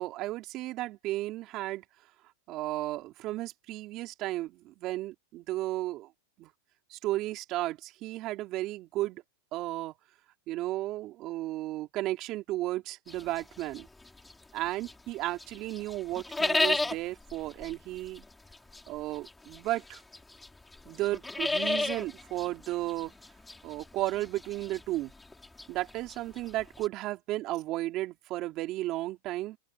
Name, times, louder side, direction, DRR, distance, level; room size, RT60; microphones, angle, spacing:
voice 1, 0.0-1.8 2.5-6.1 6.4-6.5 6.9-9.2 9.5-9.9 10.5-13.9 14.5-18.2 18.9-20.0 20.8-23.1 23.6-25.1 25.7-29.6, right 16 dB, 40° right, 3.2 m, -34 dB
sound 1, 13.1-15.1 15.4-26.9, left 2 dB, 10° left, 3.9 m, -34 dB
open air
supercardioid pair, 130°, 0 cm